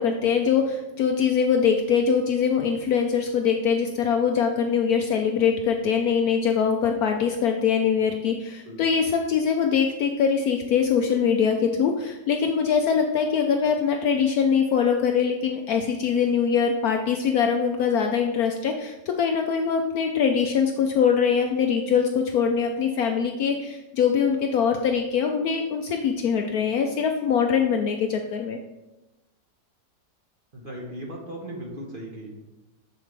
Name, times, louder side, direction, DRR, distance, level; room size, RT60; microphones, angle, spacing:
voice 1, 0.0-28.6, left 6 dB, 70° left, 4 dB, 0.9 m, -23 dB
voice 2, 30.5-32.6, right 1 dB, 35° right, -1 dB, 1.0 m, -37 dB
7.2 x 6.8 x 3.3 m, 1.0 s
omnidirectional pair, 2.0 m